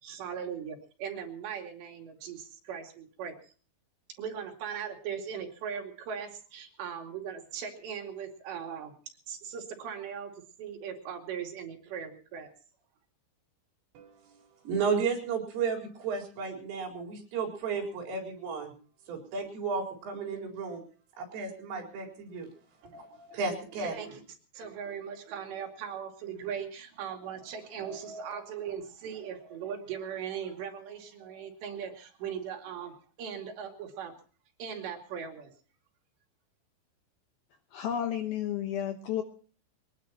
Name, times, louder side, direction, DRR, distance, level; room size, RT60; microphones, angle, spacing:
voice 1, 0.0-3.3 4.2-8.9 9.3-10.3 10.6-12.5 22.9-23.4 23.9-24.2 24.5-34.1 34.6-35.5, right 7 dB, 65° right, 3 dB, 4.5 m, -39 dB
voice 2, 13.9-14.3 14.6-18.7 19.1-20.8 21.2-22.5 22.9-23.1 23.3-23.9, right 5 dB, 85° right, 1 dB, 6.8 m, -33 dB
voice 3, 37.7-39.2, left 10 dB, 70° left, 5 dB, 2.3 m, -32 dB
23.0 x 19.5 x 2.9 m, 0.40 s
omnidirectional pair, 5.6 m